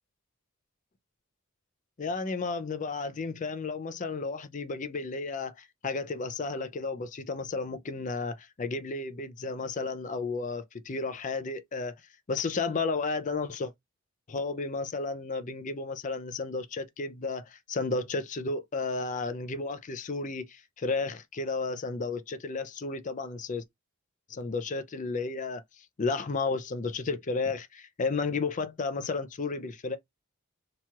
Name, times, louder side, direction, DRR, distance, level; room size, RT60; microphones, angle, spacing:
voice 1, 2.0-12.0 12.3-13.7 14.3-23.6 24.3-30.0, left 3 dB, 35° left, 0.4 m, -33 dB
3.0 x 2.3 x 2.7 m
head